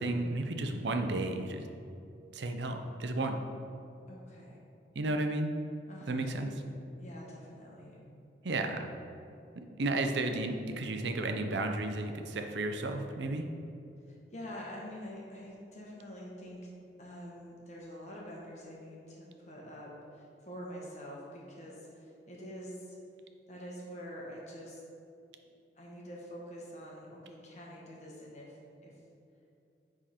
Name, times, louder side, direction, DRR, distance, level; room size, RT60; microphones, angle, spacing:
voice 1, 0.0-1.6 2.3-3.4 5.0-5.5 6.1-6.5 8.4-8.8 9.8-13.5, right 2 dB, 75° right, 5 dB, 0.6 m, -33 dB
voice 2, 4.1-4.6 5.9-6.3 7.0-8.0 14.1-16.7 17.0-23.0 23.5-24.8 25.7-28.6 28.8-28.9, equal, 40° left, -3 dB, 1.3 m, -46 dB
9.8 x 3.8 x 4.3 m, 2.8 s
head